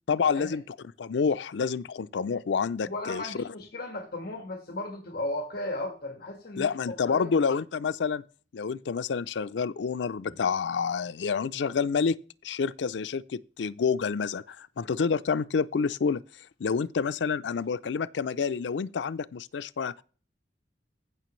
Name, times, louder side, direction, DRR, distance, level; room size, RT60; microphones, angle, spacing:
voice 1, 0.1-3.4 6.6-8.2 8.5-12.2 12.4-16.2 16.6-20.0, left 5 dB, 90° left, 0.4 m, -28 dB
voice 2, 2.8-7.3, left 1 dB, 60° left, 1.6 m, -35 dB
15.5 x 5.9 x 3.1 m
head